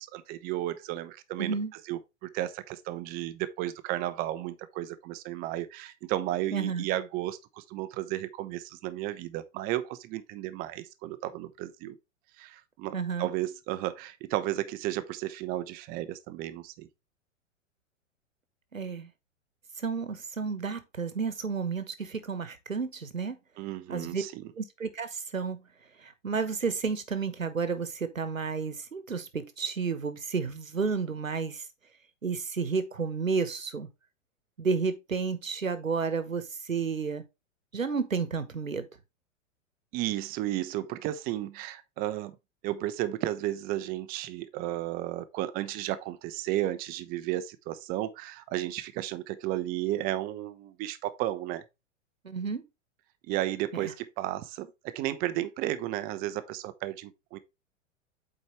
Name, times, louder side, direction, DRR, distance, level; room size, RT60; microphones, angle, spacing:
voice 1, 0.0-12.0 12.4-16.9 23.6-24.5 39.9-42.4 42.6-51.6 53.2-57.4, right 14 dB, 25° right, 0.6 m, -33 dB
voice 2, 1.4-1.7 6.5-6.9 12.9-13.3 18.7-19.1 19.8-23.4 23.9-24.2 24.6-25.6 26.0-31.7 32.2-33.9 34.6-37.2 37.7-38.9 52.2-52.6 53.7-53.9, right 5 dB, 85° right, 1.1 m, -31 dB
7.8 x 4.6 x 3.1 m
figure-of-eight pair, 105°, 39 cm